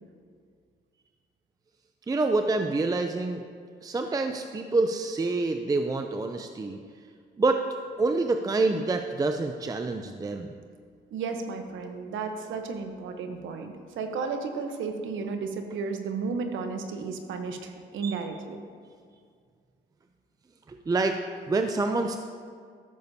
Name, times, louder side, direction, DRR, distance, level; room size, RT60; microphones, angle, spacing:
voice 1, 2.1-3.4 3.8-6.8 7.4-7.6 8.0-10.6 18.0-18.1 20.7-21.2 21.5-22.2, right 3 dB, 20° right, 6 dB, 0.4 m, -27 dB
voice 2, 11.1-18.6, right 4 dB, 75° right, 6 dB, 1.0 m, -33 dB
13.5 x 6.8 x 2.8 m, 2.1 s
cardioid pair, 90°, 20 cm